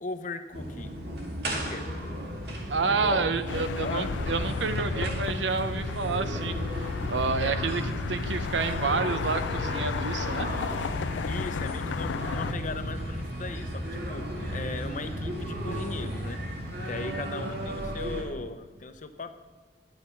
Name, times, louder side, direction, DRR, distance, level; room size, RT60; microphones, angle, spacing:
voice 1, 0.0-0.9 1.5-1.9 2.9-3.3 3.8-4.1 7.4-7.6 11.3-16.4 16.8-19.4, left 3 dB, 45° left, 9 dB, 0.7 m, -37 dB
sound 1, 0.5-18.2, equal, 60° right, 2.1 m, -34 dB
voice 2, 2.7-7.8 8.1-10.5 17.0-17.5, right 4 dB, 90° right, 11 dB, 0.7 m, -29 dB
sound 2, 3.5-12.5, left 6 dB, 85° left, 0.4 m, -34 dB
9.4 x 8.9 x 5.6 m, 1.4 s
head